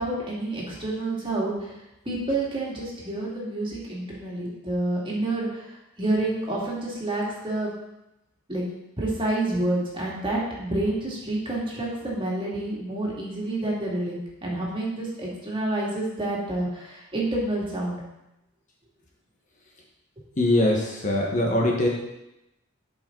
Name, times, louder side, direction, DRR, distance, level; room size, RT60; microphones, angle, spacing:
voice 1, 0.0-1.7 2.1-5.6 6.0-7.7 8.5-8.6 9.0-18.0, right 2 dB, 25° right, -5 dB, 2.3 m, -28 dB
voice 2, 20.4-21.9, left 1 dB, 35° left, -1 dB, 1.3 m, -22 dB
11.5 x 5.4 x 3.9 m, 0.90 s
head